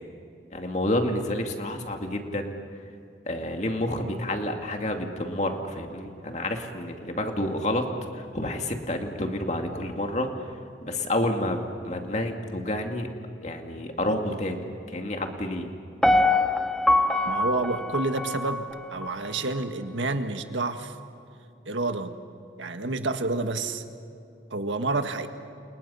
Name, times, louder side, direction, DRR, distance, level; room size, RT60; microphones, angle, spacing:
voice 1, 0.5-2.6 3.3-7.8 8.1-10.3 10.8-13.1 13.4-15.7, left 1 dB, 40° left, 3 dB, 2.4 m, -29 dB
Piano, 16.0-19.1 19.6-19.7, left 2 dB, 5° left, 0.7 m, -24 dB
voice 2, 17.3-21.0 21.7-22.1 22.6-23.8 24.5-25.3, right 2 dB, 90° right, 7 dB, 1.7 m, -29 dB
29.5 x 29.0 x 5.7 m, 2.6 s
head